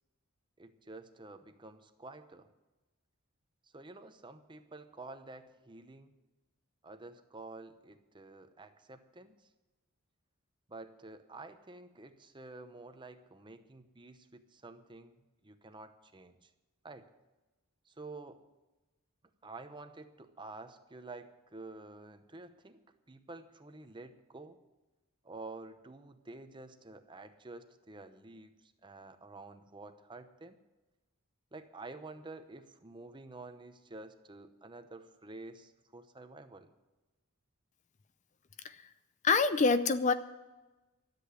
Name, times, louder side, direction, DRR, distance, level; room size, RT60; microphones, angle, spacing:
voice 1, 0.6-2.5 3.7-6.1 6.8-9.5 10.7-15.2 15.4-16.5 16.8-17.1 17.9-18.5 19.4-24.6 25.2-30.6 31.5-36.7, right 2 dB, 20° right, 9 dB, 0.8 m, -50 dB
voice 2, 39.2-40.1, left 4 dB, 35° left, 12 dB, 0.5 m, -26 dB
13.0 x 8.2 x 9.6 m, 1.1 s
head